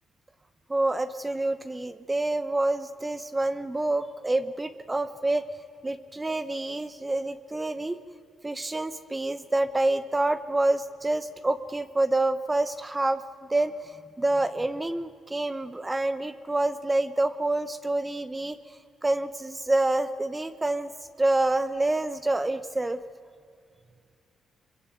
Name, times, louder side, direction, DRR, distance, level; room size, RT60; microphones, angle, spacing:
voice 1, 0.7-5.4 5.8-8.0 8.4-13.2 13.5-20.9 21.2-23.0, right 2 dB, 15° right, 12 dB, 1.0 m, -27 dB
24.5 x 22.5 x 9.3 m, 2.3 s
cardioid pair, 90°, 0 cm